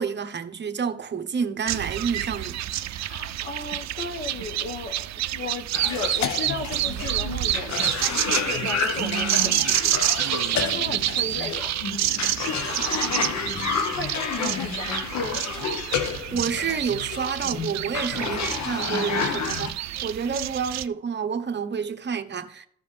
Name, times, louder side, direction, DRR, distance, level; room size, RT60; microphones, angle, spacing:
voice 1, 0.0-2.6 12.7-12.8 14.4-14.6 16.3-22.7, right 6 dB, 35° right, 1.0 m, -29 dB
sound 1, 1.7-20.9, right 13 dB, 60° right, 0.5 m, -28 dB
voice 2, 3.0-11.7 12.1-13.3 13.6-15.5 15.8-16.1 18.5-18.8 20.3-20.5, left 3 dB, 40° left, 1.2 m, -35 dB
Cough, 5.7-19.7, left 6 dB, 65° left, 1.1 m, -30 dB
sound 2, 12.6-13.3 14.2-14.8 15.5-15.7 15.9-16.2 16.5-16.7 18.0-19.0, left 3 dB, 90° left, 2.2 m, -44 dB
14.5 x 5.4 x 3.3 m
cardioid pair, 90°, 30 cm